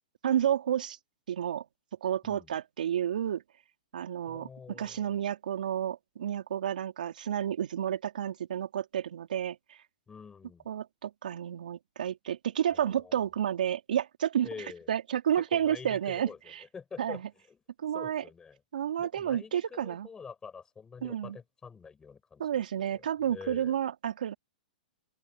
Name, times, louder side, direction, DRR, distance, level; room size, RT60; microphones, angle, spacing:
voice 1, 0.2-1.0 1.3-1.6 2.0-3.4 3.9-4.5 4.8-9.8 10.7-14.5 14.9-16.3 17.0-17.2 17.8-18.2 18.7-20.1 21.0-21.4 22.4-24.3, right 10 dB, 70° right, 3.1 m, -30 dB
voice 2, 2.2-2.5 4.3-5.2 10.1-10.7 12.7-13.2 14.4-14.9 15.5-17.2 17.5-17.6 17.9-18.6 19.0-23.8, left 5 dB, 15° left, 6.1 m, -47 dB
open air
hypercardioid pair, 125°, 5 cm